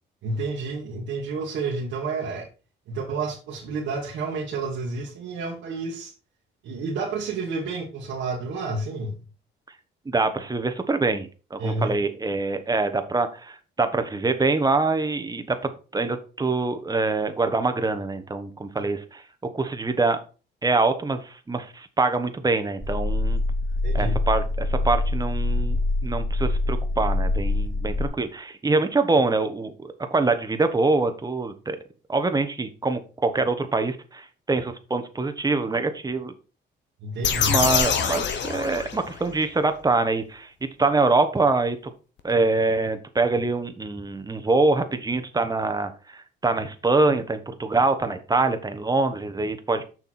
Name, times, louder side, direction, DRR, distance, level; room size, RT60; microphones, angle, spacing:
voice 1, 0.2-2.5 2.9-6.1 6.6-9.3 11.6-12.0 23.8-24.2 37.0-37.6, right 3 dB, 75° right, 1.7 m, -30 dB
voice 2, 10.0-19.2 19.5-20.2 20.6-23.4 23.9-25.8 26.0-31.8 32.1-36.3 37.5-40.5 40.8-41.9 42.2-49.9, right 3 dB, 20° right, 1.2 m, -24 dB
sound 1, 22.8-28.1, left 2 dB, ahead, 0.9 m, -25 dB
sound 2, 37.2-39.4, left 7 dB, 65° left, 1.1 m, -25 dB
6.8 x 5.8 x 4.3 m
cardioid pair, 90°, 20 cm